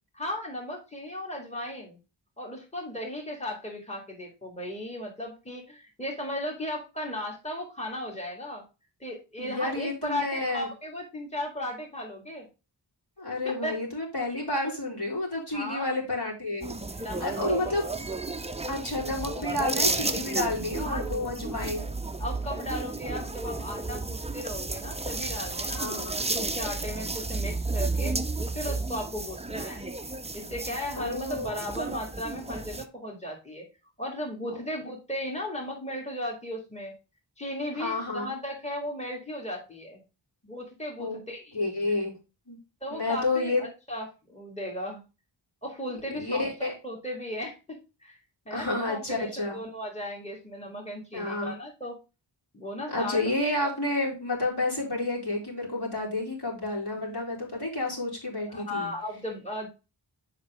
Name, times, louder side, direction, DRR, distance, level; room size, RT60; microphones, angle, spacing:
voice 1, 0.1-2.0 2.4-8.6 9.0-12.5 13.3-13.8 15.5-16.0 17.0-17.8 19.3-20.1 20.8-21.8 22.2-28.2 28.5-29.8 30.3-33.7 34.0-36.9 37.4-40.0 40.4-41.9 42.8-45.0 45.6-48.2 48.5-52.0 52.5-53.3 53.6-53.7 58.5-59.7, left 1 dB, 15° left, -1 dB, 2.1 m, -36 dB
voice 2, 9.4-10.7 13.2-16.8 17.2-17.9 18.7-22.0 25.8-26.2 31.0-31.7 34.5-34.6 37.8-38.3 41.0-41.2 41.5-42.1 42.5-42.6 42.9-43.6 46.1-46.7 48.5-49.6 51.1-51.5 52.9-58.9, left 2 dB, 60° left, -3 dB, 3.6 m, -30 dB
sound 1, 16.6-32.9, right 3 dB, 15° right, 0.5 m, -32 dB
7.2 x 5.2 x 3.5 m, 0.29 s
wide cardioid pair, 65°, 45 cm